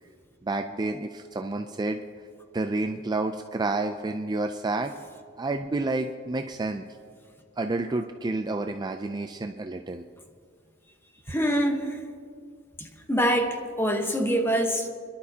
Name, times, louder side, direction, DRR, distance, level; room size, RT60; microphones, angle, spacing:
voice 1, 0.4-2.0 2.5-4.9 5.4-6.8 7.6-10.0, right 2 dB, 20° right, 6 dB, 0.4 m, -29 dB
voice 2, 11.3-12.0 12.8-14.9, equal, 10° left, 4 dB, 1.1 m, -25 dB
27.5 x 11.5 x 2.8 m, 2.1 s
head